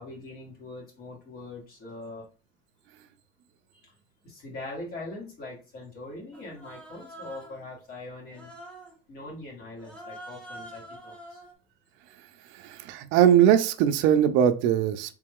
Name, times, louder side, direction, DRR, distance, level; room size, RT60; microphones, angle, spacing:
voice 1, 0.0-2.2 3.8-3.9 4.2-8.5 9.1-11.4, left 2 dB, 45° left, 1.9 m, -42 dB
Human voice, 6.3-7.7 8.3-9.0 9.8-11.5, right 1 dB, 5° left, 0.7 m, -45 dB
voice 2, 12.5-15.2, right 10 dB, 65° right, 0.5 m, -21 dB
3.3 x 3.1 x 3.6 m
cardioid pair, 165°, 21 cm